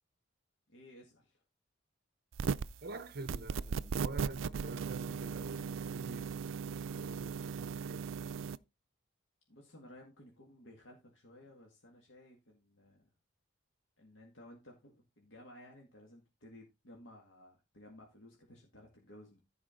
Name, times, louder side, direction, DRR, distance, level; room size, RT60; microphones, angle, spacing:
voice 1, 0.7-1.4 9.5-13.1 14.0-19.4, left 1 dB, 70° left, 2.0 m, -56 dB
sound 1, 2.3-2.8 3.3-8.6, right 6 dB, 75° right, 0.4 m, -37 dB
voice 2, 2.8-8.2, right 3 dB, 50° right, 0.8 m, -47 dB
14.5 x 5.0 x 3.8 m
head